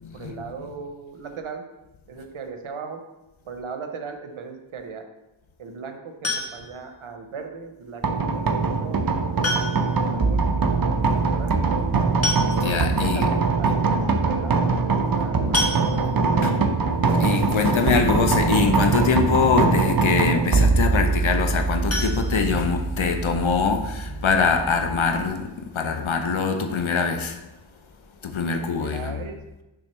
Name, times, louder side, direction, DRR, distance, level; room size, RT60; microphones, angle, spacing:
voice 1, 0.1-1.7 2.1-3.0 3.5-5.1 5.6-8.0 8.5-9.6 10.0-11.5 13.0-14.7 15.0-16.4 28.4-29.4, right 5 dB, 85° right, 6 dB, 0.9 m, -38 dB
sound 1, 6.2-6.9 8.4-8.5 9.4-10.0 10.3-10.4 10.7-10.8 11.8-11.9 12.2-12.9 13.5-13.6 13.9-14.1 15.5-16.4 21.9-23.1 23.4-23.5 24.0-24.1 24.4-24.5, left 2 dB, 30° left, 1.2 m, -29 dB
sound 2, 8.0-25.2, right 4 dB, 50° right, 0.7 m, -23 dB
voice 2, 12.6-13.3 16.4-16.6 17.2-25.5 25.7-27.4 28.2-29.2, left 5 dB, 75° left, 6 dB, 0.8 m, -23 dB
6.4 x 3.6 x 5.5 m, 1.0 s
wide cardioid pair, 55°, 48 cm